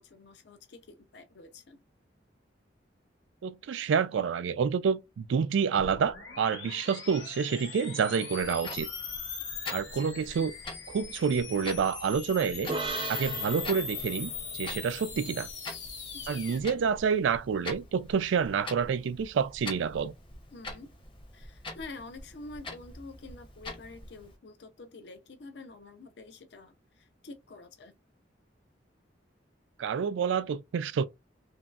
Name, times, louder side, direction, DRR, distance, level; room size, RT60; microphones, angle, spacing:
voice 1, 0.0-1.8 9.8-10.0 16.1-16.4 20.5-20.9 21.3-28.0, left 3 dB, 65° left, 0.5 m, -48 dB
voice 2, 3.4-8.9 9.7-10.5 10.9-12.7 13.1-15.5 16.3-20.1 29.8-31.1, right 6 dB, 85° right, 0.3 m, -28 dB
sound 1, 5.8-16.6, left 6 dB, 85° left, 1.1 m, -40 dB
Clock, 8.3-24.4, left 2 dB, 25° left, 0.7 m, -45 dB
sound 2, 12.7-16.2, right 3 dB, 25° right, 0.5 m, -39 dB
2.9 x 2.6 x 2.3 m
head